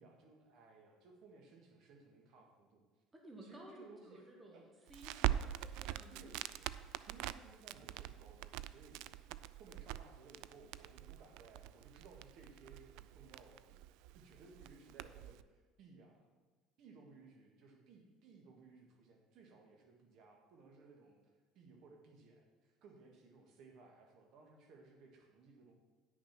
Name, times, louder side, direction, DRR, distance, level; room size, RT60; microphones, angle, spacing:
voice 1, 0.0-2.8 3.4-4.2 4.5-5.0 6.1-9.0 9.6-13.8 14.1-16.4 16.8-25.7, right 3 dB, 60° right, 2 dB, 1.9 m, -60 dB
voice 2, 3.1-6.3, right 1 dB, 15° right, 0 dB, 1.3 m, -56 dB
Crackle, 4.9-15.4, right 14 dB, 75° right, 0.3 m, -43 dB
9.6 x 6.4 x 6.0 m, 1.3 s
cardioid pair, 145°, 0 cm